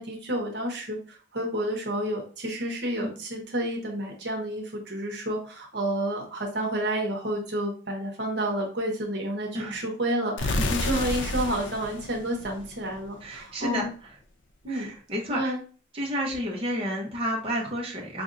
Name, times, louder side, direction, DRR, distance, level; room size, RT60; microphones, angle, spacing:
voice 1, 0.0-13.9 14.6-14.9 15.3-15.6, right 1 dB, 65° right, 1 dB, 1.0 m, -30 dB
sound 1, 10.4-13.2, left 2 dB, 90° left, 0.5 m, -30 dB
voice 2, 10.4-10.7 13.2-14.2 14.7-15.5 15.9-18.2, equal, 30° right, -3 dB, 0.8 m, -31 dB
5.0 x 2.5 x 2.6 m, 0.39 s
head